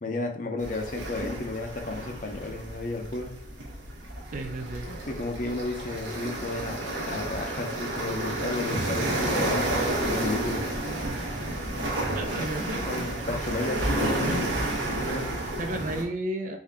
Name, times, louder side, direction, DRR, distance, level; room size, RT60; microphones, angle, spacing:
voice 1, 0.0-3.4 4.9-10.6 12.6-14.7 15.0-15.5, left 2 dB, 45° left, 4 dB, 0.5 m, -33 dB
sound 1, 0.6-16.0, right 1 dB, 85° right, 1.0 m, -31 dB
voice 2, 4.3-4.9 12.0-13.1 14.2-14.5 15.6-16.6, right 1 dB, 45° right, 4 dB, 0.4 m, -33 dB
3.6 x 2.6 x 3.4 m, 0.65 s
head